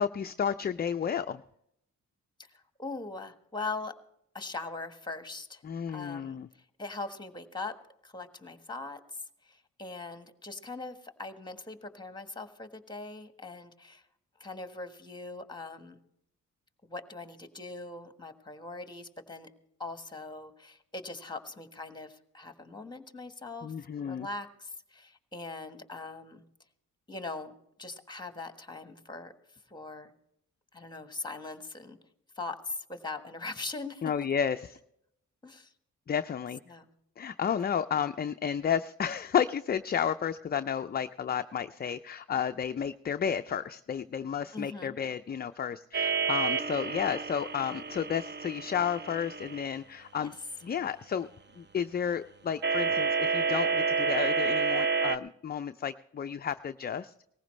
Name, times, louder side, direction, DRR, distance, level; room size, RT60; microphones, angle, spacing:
voice 1, 0.0-1.4 5.6-6.5 23.6-24.3 34.0-34.7 36.1-36.6 37.2-50.3 50.6-51.3 51.6-57.3, left 8 dB, 30° left, 9 dB, 0.4 m, -32 dB
voice 2, 2.4-4.0 4.3-5.6 5.9-6.4 6.8-7.8 8.0-14.0 14.4-16.0 16.8-19.5 19.8-26.4 27.1-27.5 27.8-29.3 29.7-30.1 30.7-32.0 32.4-34.1 35.4-35.7 36.7-36.9 44.5-45.0 50.2-50.3, left 3 dB, 15° left, 8 dB, 1.4 m, -41 dB
sound 1, 45.9-49.6 52.6-55.2, right 5 dB, 30° right, 0.6 m, -29 dB
18.5 x 15.0 x 3.2 m, 0.76 s
cardioid pair, 70°, 33 cm